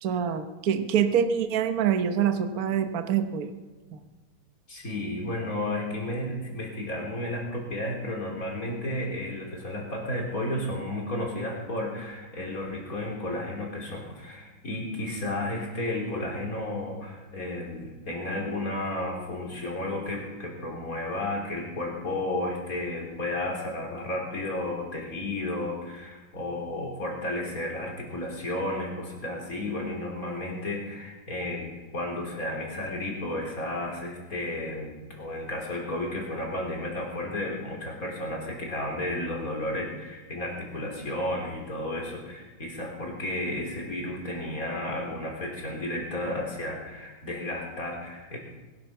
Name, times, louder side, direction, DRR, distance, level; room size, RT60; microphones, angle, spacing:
voice 1, 0.0-3.5 3.9-4.1, right 8 dB, 50° right, 8 dB, 1.3 m, -25 dB
voice 2, 4.7-48.4, left 1 dB, 40° left, -1 dB, 4.1 m, -33 dB
21.0 x 11.5 x 5.6 m, 1.3 s
omnidirectional pair, 2.4 m